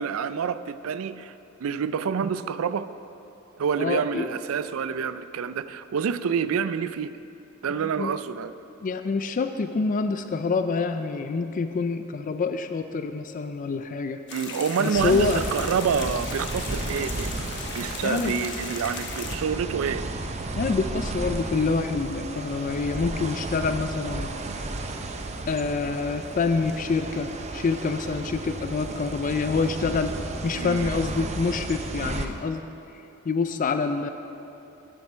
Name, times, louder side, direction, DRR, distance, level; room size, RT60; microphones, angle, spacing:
voice 1, 0.0-1.3 1.6-2.9 3.6-7.1 7.6-8.5 14.3-17.3 17.7-20.0 30.5-31.0, right 6 dB, 75° right, 14 dB, 0.4 m, -27 dB
voice 2, 3.8-4.3 8.0-8.1 8.8-14.2 14.8-15.4 18.0-18.3 20.6-24.3 25.5-30.2 30.4-32.6 33.3-34.1, left 4 dB, 40° left, 9 dB, 0.3 m, -26 dB
sound 1, 14.3-19.4, left 5 dB, 55° left, 1.1 m, -37 dB
sound 2, 14.9-32.3, right 2 dB, 30° right, 0.6 m, -33 dB
11.5 x 7.5 x 5.5 m, 2.9 s
head